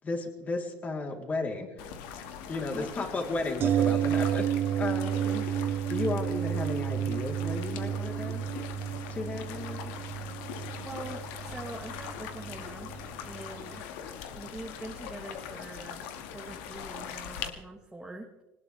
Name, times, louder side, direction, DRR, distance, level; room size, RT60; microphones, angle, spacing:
voice 1, 0.0-1.9 2.5-4.5 4.8-5.2 5.9-8.4 9.1-10.0, left 3 dB, 30° left, 1 dB, 3.7 m, -34 dB
sound 1, 1.8-17.5, left 8 dB, 80° left, 2.1 m, -42 dB
voice 2, 2.7-3.1 5.2-5.5 10.6-12.9 13.2-13.9 14.3-16.0 16.3-18.3, right 2 dB, 10° right, 2 dB, 1.6 m, -43 dB
sound 2, 3.6-13.5 13.8-13.9, right 10 dB, 40° right, 0.4 m, -31 dB
21.5 x 19.0 x 3.5 m, 1.1 s
supercardioid pair, 115°, 6 cm